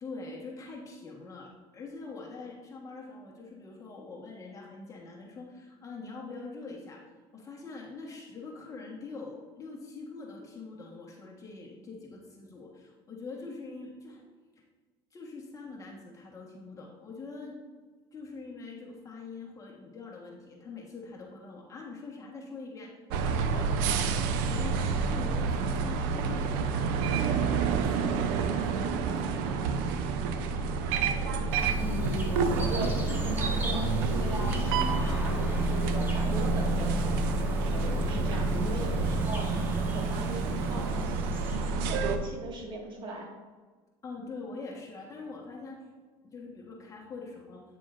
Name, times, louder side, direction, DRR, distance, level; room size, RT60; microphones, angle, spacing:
voice 1, 0.0-7.0 7.3-14.2 15.1-17.6 18.1-23.0 23.4-24.0 24.4-27.4 27.7-30.0 30.5-30.7 44.0-45.9 46.3-47.6, left 3 dB, 30° left, -2 dB, 1.5 m, -44 dB
sound 1, 23.1-42.2, right 4 dB, 90° right, 0.6 m, -28 dB
voice 2, 30.8-31.3 31.7-39.5 39.9-41.3 41.6-43.3, right 2 dB, 45° right, -1 dB, 1.9 m, -39 dB
sound 2, 31.5-41.8, right 1 dB, 20° right, 1.5 m, -37 dB
8.9 x 7.4 x 2.6 m, 1.4 s
supercardioid pair, 110°, 12 cm